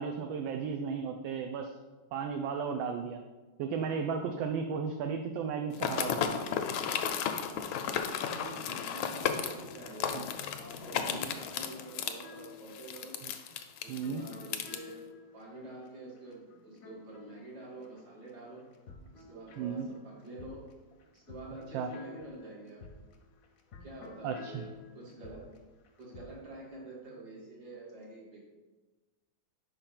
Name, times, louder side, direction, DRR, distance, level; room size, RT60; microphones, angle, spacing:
voice 1, 0.0-1.7 2.1-3.2 3.6-6.6 10.1-10.3 10.9-11.2 13.2-13.3 13.9-14.2 19.6-19.9 21.7-21.9 24.2-24.6, right 6 dB, 80° right, 5 dB, 1.3 m, -35 dB
sound 1, 5.7-14.8, left 8 dB, 85° left, 1.4 m, -34 dB
voice 2, 8.3-10.3 10.6-13.2 13.8-15.0 15.3-18.6 19.1-20.6 21.1-22.8 23.8-24.7 24.9-25.4 26.0-28.4, right 2 dB, 55° right, -4 dB, 2.2 m, -47 dB
sound 2, 9.5-18.3 18.6-26.4, left 3 dB, 60° left, 0.9 m, -53 dB
5.1 x 4.4 x 5.7 m, 1.2 s
omnidirectional pair, 2.2 m